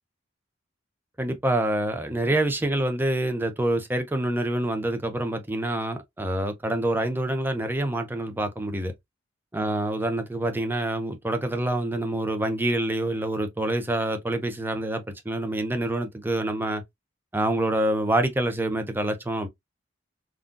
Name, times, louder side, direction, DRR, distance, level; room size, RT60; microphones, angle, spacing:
voice 1, 1.2-8.9 9.5-16.8 17.3-19.5, right 1 dB, 10° right, 0.6 m, -26 dB
3.7 x 2.3 x 2.5 m
head